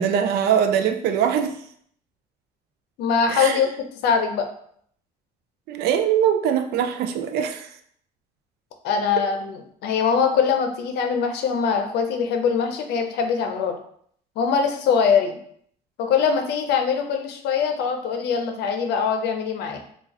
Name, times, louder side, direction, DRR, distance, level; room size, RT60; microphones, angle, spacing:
voice 1, 0.0-1.6 3.3-3.6 5.7-7.7, right 8 dB, 75° right, 7 dB, 0.4 m, -22 dB
voice 2, 3.0-3.7 4.0-4.5 8.8-13.8 14.4-15.4 16.0-19.8, left 6 dB, 75° left, 5 dB, 0.6 m, -22 dB
3.7 x 2.3 x 2.9 m, 0.64 s
cardioid pair, 110°, 17 cm